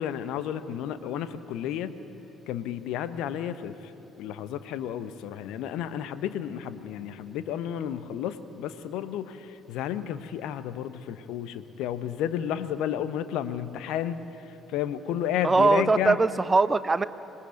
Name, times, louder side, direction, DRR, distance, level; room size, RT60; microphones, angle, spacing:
voice 1, 0.0-2.0 2.5-3.9 4.2-16.2, left 10 dB, 60° left, 12 dB, 1.1 m, -32 dB
voice 2, 15.4-17.0, right 3 dB, 25° right, 14 dB, 1.0 m, -21 dB
26.0 x 20.0 x 9.4 m, 2.9 s
figure-of-eight pair, 45°, 0 cm